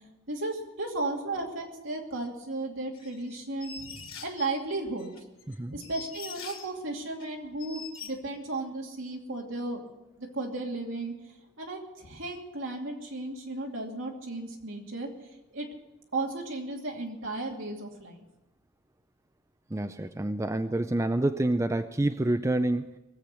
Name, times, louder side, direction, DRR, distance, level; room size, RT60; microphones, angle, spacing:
voice 1, 0.3-5.1 5.7-9.8 10.2-11.1 11.6-15.1 15.5-15.7 16.1-18.2, right 2 dB, 65° right, 0 dB, 2.7 m, -34 dB
sound 1, 2.9-4.5 5.0-6.7 7.2-7.3 7.6-8.1, left 6 dB, 90° left, 2.8 m, -43 dB
voice 2, 19.7-23.0, right 1 dB, 15° right, 8 dB, 0.4 m, -28 dB
19.5 x 7.9 x 8.4 m, 1.0 s
head